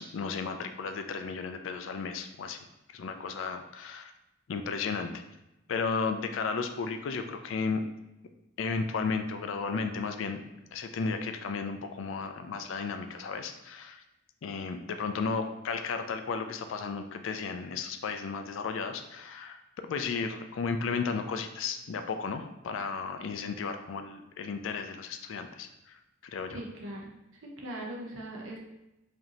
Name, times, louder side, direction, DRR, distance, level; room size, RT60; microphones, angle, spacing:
voice 1, 0.0-2.6 2.9-4.1 4.5-5.2 5.7-7.8 8.6-10.4 10.7-14.0 14.4-26.0 26.3-26.6, left 5 dB, 80° left, 7 dB, 0.4 m, -34 dB
voice 2, 26.5-27.1 27.4-28.6, right 1 dB, 90° right, -2 dB, 0.8 m, -40 dB
5.0 x 2.7 x 2.9 m, 0.92 s
head